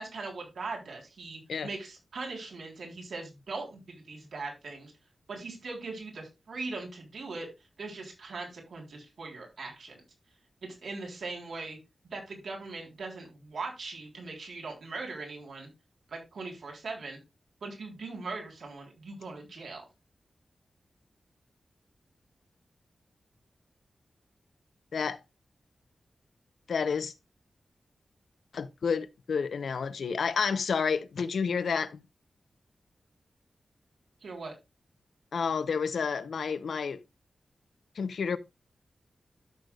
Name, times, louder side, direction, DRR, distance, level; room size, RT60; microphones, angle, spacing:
voice 1, 0.0-4.9 5.3-7.5 7.8-10.0 10.6-11.8 12.1-15.7 16.1-17.2 17.6-19.8 34.2-34.5, right 3 dB, 80° right, 3.6 m, -40 dB
voice 2, 26.7-27.1 28.5-32.0 35.3-37.0 38.0-38.4, left 5 dB, 90° left, 0.7 m, -30 dB
13.0 x 6.6 x 2.4 m
wide cardioid pair, 145°, 0 cm